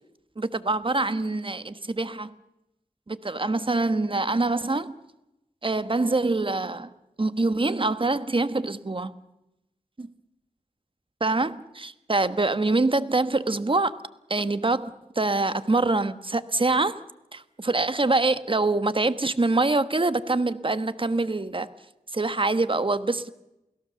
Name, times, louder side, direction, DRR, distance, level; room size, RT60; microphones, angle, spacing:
voice 1, 0.4-2.3 3.1-4.9 5.6-6.9 7.2-9.1 10.0-10.1 11.2-13.9 14.3-17.0 17.3-21.7 22.1-23.3, right 3 dB, 40° right, 12 dB, 1.3 m, -25 dB
29.0 x 17.5 x 7.1 m, 0.91 s
cardioid pair, 45°, 14 cm